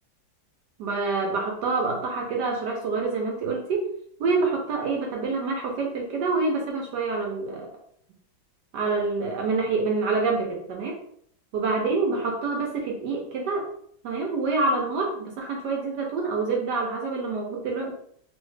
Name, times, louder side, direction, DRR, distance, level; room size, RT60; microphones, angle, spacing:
voice 1, 0.8-3.9 4.2-7.7 8.7-11.0 11.5-13.7 14.0-17.9, right 3 dB, 70° right, 0 dB, 1.1 m, -26 dB
3.1 x 2.7 x 3.2 m, 0.65 s
omnidirectional pair, 2.2 m